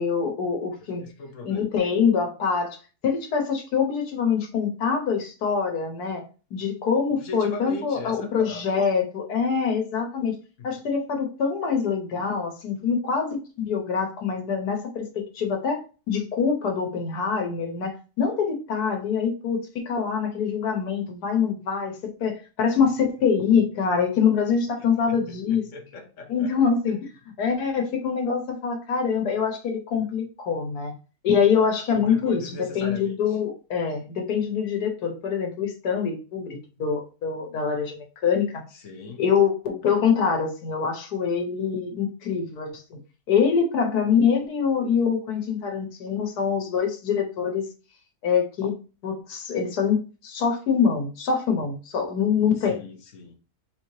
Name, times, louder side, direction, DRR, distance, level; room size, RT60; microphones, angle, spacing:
voice 1, 0.0-1.0 1.5-2.8 3.0-6.2 6.5-10.3 10.6-15.8 16.1-25.6 26.3-27.1 27.4-30.9 31.2-32.4 32.7-38.6 39.2-43.0 43.3-47.7 48.2-48.7 49.0-50.0 50.2-52.8, left 6 dB, 90° left, 4 dB, 1.4 m, -24 dB
voice 2, 0.8-1.7 7.1-8.8 10.6-10.8 24.8-26.5 30.0-30.1 31.9-33.4 38.7-39.3 52.6-53.3, left 2 dB, 60° left, 4 dB, 1.0 m, -39 dB
4.1 x 3.1 x 2.7 m, 0.34 s
omnidirectional pair, 1.6 m